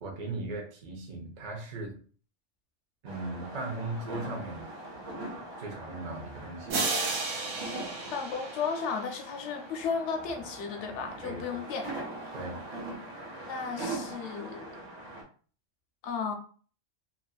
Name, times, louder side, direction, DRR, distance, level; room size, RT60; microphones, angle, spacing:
voice 1, 0.0-2.0 3.0-4.7 5.6-6.8 11.2-11.4 12.3-12.6, right 2 dB, 45° right, 0.6 m, -38 dB
sound 1, 3.1-15.2, right 2 dB, 60° right, 1.0 m, -41 dB
sound 2, 6.7-9.4, right 3 dB, 80° right, 1.0 m, -33 dB
voice 2, 8.1-11.9 13.5-14.8 16.0-16.3, left 5 dB, 70° left, 0.8 m, -34 dB
2.6 x 2.5 x 2.3 m
omnidirectional pair, 1.3 m